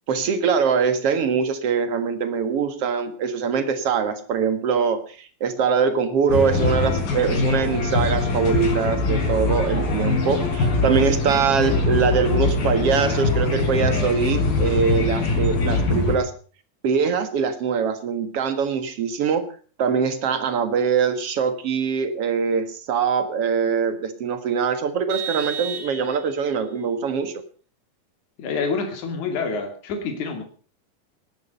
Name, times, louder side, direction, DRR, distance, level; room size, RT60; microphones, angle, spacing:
voice 1, 0.1-16.3 16.8-19.4 19.8-27.3, right 6 dB, 50° right, 10 dB, 2.3 m, -23 dB
sound 1, 6.3-16.2, left 3 dB, 85° left, 6.3 m, -22 dB
Vehicle horn car horn honking, 25.1-26.5, right 8 dB, 65° right, 3.8 m, -33 dB
voice 2, 28.4-30.4, left 4 dB, 60° left, 4 dB, 3.9 m, -27 dB
18.0 x 11.5 x 5.4 m, 0.41 s
omnidirectional pair, 4.0 m